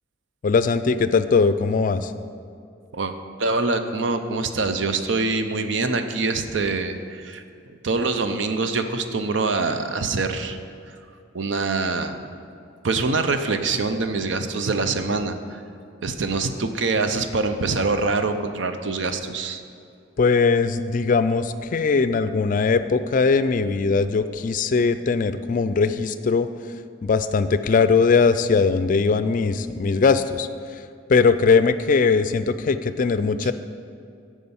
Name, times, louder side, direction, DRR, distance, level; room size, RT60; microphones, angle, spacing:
voice 1, 0.4-2.1 20.2-26.5 27.0-30.5 31.1-33.5, left 4 dB, 45° left, 12 dB, 0.4 m, -20 dB
voice 2, 3.4-7.4 7.8-10.6 11.3-12.2 12.8-15.6 16.0-19.6 33.4-33.5, right 3 dB, 75° right, 8 dB, 0.6 m, -24 dB
9.5 x 4.9 x 7.0 m, 2.4 s
head